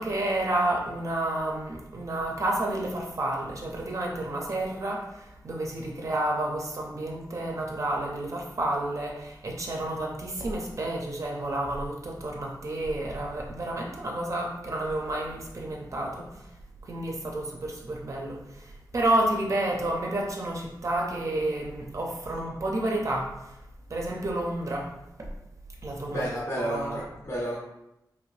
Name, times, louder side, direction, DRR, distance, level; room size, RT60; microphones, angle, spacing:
voice 1, 0.0-16.3 16.9-23.3 23.9-24.9 25.8-26.3 26.6-27.0, right 1 dB, 45° right, -1 dB, 0.5 m, -30 dB
voice 2, 26.1-27.6, right 1 dB, 35° left, -5 dB, 0.7 m, -31 dB
3.0 x 2.5 x 3.1 m, 0.89 s
wide cardioid pair, 140°, 7 cm